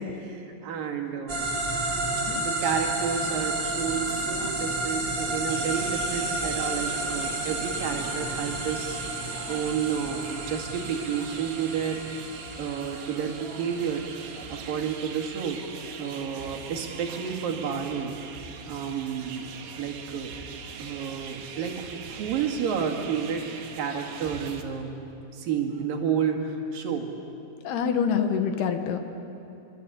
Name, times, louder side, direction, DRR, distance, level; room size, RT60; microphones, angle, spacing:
voice 1, 0.0-1.5 2.4-9.0 9.5-12.0 12.6-15.6 16.0-19.5 19.8-20.3 20.8-23.5 23.7-25.0 25.3-27.1, right 7 dB, 55° right, 2 dB, 3.7 m, -31 dB
sound 1, 1.3-15.5, right 2 dB, 30° right, 2.6 m, -32 dB
sound 2, 5.5-24.6, right 6 dB, 70° right, 3.5 m, -42 dB
voice 2, 27.6-29.0, left 7 dB, 70° left, 7 dB, 3.2 m, -26 dB
25.5 x 23.5 x 8.4 m, 2.7 s
omnidirectional pair, 5.2 m